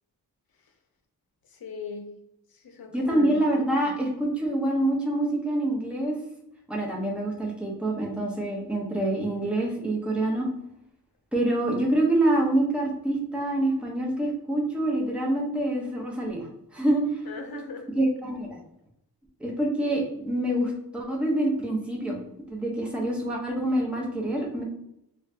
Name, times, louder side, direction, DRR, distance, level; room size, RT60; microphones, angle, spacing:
voice 1, 1.5-2.1 2.5-3.4 17.2-17.9, left 4 dB, 60° left, 4 dB, 0.7 m, -38 dB
voice 2, 2.9-6.2 6.7-10.5 11.3-17.2 18.0-18.6 19.4-22.2 22.5-24.6, right 1 dB, 5° right, -2 dB, 0.8 m, -26 dB
3.1 x 2.8 x 3.3 m, 0.79 s
wide cardioid pair, 135°, 40 cm